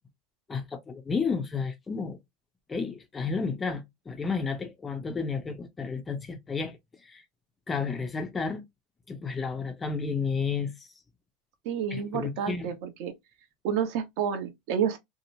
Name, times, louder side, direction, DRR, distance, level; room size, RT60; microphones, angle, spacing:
voice 1, 0.5-2.2 2.7-7.2 7.7-8.6 9.1-10.9 11.9-12.7, left 5 dB, 15° left, 0.4 m, -32 dB
voice 2, 11.6-13.1 13.6-15.0, right 8 dB, 60° right, 0.8 m, -29 dB
2.8 x 2.0 x 2.6 m
supercardioid pair, 145°, 0 cm